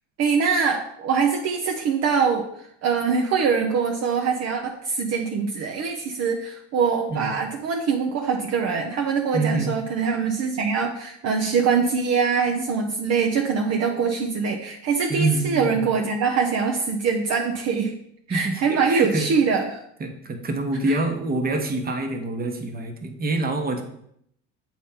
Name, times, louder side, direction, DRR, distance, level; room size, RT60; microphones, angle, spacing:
voice 1, 0.2-17.9 18.3-19.8 20.9-21.0, right 5 dB, 50° right, 2 dB, 0.8 m, -23 dB
voice 2, 9.3-9.8 15.1-15.9 18.3-19.2 20.0-23.8, right 2 dB, 25° right, 4 dB, 1.1 m, -26 dB
7.2 x 4.3 x 3.7 m, 0.71 s
supercardioid pair, 105°, 34 cm